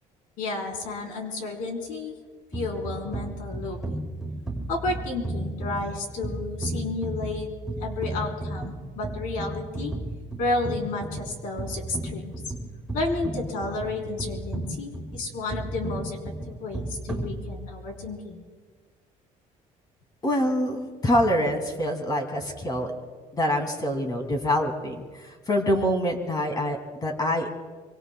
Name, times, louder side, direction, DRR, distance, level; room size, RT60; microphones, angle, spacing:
voice 1, 0.4-2.2 2.5-4.1 4.7-7.5 7.8-9.9 10.4-12.3 12.9-18.4, left 2 dB, 75° left, 1 dB, 4.0 m, -32 dB
sound 1, 2.5-17.9, right 1 dB, 5° right, 3.6 m, -34 dB
voice 2, 20.2-22.9 23.3-27.5, equal, 30° left, 3 dB, 2.5 m, -25 dB
25.5 x 24.5 x 2.3 m, 1.5 s
cardioid pair, 125°, 14 cm